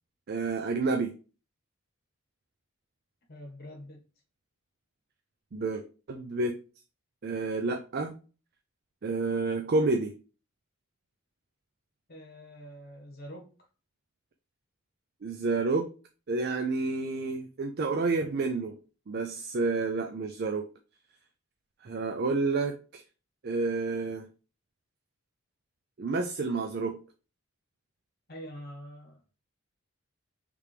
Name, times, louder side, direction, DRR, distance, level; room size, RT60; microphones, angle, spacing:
voice 1, 0.3-1.1 5.5-5.8 6.1-6.6 7.2-8.1 9.0-10.1 15.2-15.9 16.3-18.8 19.1-20.7 21.8-23.0 23.4-24.3 26.0-27.0, right 3 dB, 45° right, 0.4 m, -29 dB
voice 2, 3.3-4.0 12.1-13.7 28.3-29.4, equal, 45° left, 1.3 m, -45 dB
4.9 x 3.4 x 3.2 m
head